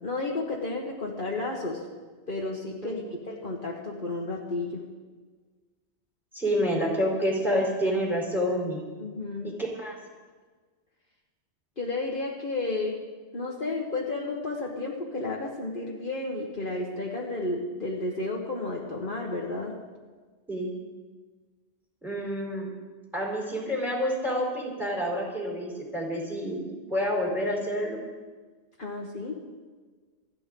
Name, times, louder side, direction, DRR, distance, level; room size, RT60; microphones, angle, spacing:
voice 1, 0.0-1.8 2.3-4.8 9.0-9.5 11.8-13.0 13.3-19.8 28.8-29.4, left 2 dB, 50° left, -2 dB, 1.6 m, -32 dB
voice 2, 6.3-8.9 9.4-9.5 9.8-10.0 20.5-20.7 22.0-22.7 23.1-26.6 26.9-28.0, equal, ahead, -2 dB, 3.9 m, -28 dB
27.5 x 9.9 x 3.8 m, 1.4 s
omnidirectional pair, 1.2 m